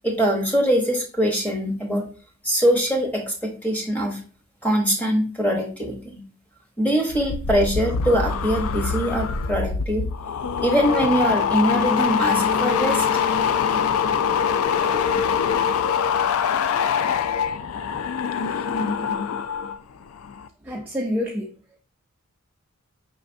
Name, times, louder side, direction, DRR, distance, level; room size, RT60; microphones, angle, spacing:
voice 1, 0.0-2.1 2.4-4.2 4.6-6.2 6.8-10.1 10.6-13.2, equal, 5° left, 0.9 m, -23 dB
sound 1, 7.1-19.8 20.1-20.5, left 6 dB, 70° left, 0.3 m, -23 dB
voice 2, 20.7-21.5, left 1 dB, 10° right, 0.3 m, -27 dB
5.1 x 3.2 x 2.5 m
head